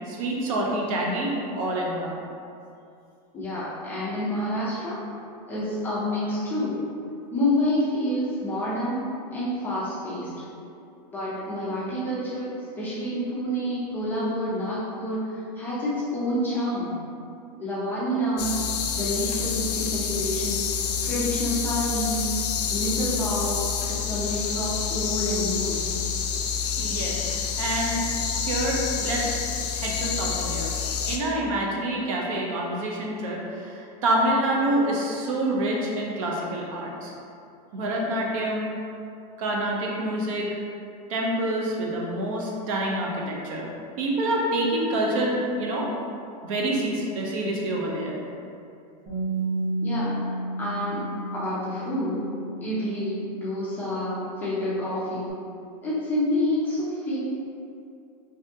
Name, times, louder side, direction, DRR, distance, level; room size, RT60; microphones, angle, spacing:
voice 1, 0.1-2.2 26.8-28.0 28.4-29.4 29.7-30.7 31.0-37.1 37.7-38.7 39.4-40.5 41.1-43.7 44.0-45.9 46.4-48.2, right 1 dB, 55° right, -2 dB, 0.6 m, -27 dB
voice 2, 3.3-5.0 5.5-6.8 7.3-9.1 9.3-10.3 11.1-16.9 17.6-18.6 18.9-20.7 21.0-22.3 22.7-23.6 23.9-25.9 49.8-50.2 50.6-51.1 51.3-52.3 52.6-55.4 55.8-57.2, left 1 dB, 10° left, -10 dB, 0.4 m, -28 dB
sound 1, 18.4-31.2, left 7 dB, 80° left, 0.4 m, -28 dB
Bass guitar, 49.1-55.3, right 2 dB, 15° right, 0.8 m, -33 dB
3.4 x 2.6 x 2.6 m, 2.6 s
supercardioid pair, 170°, 21 cm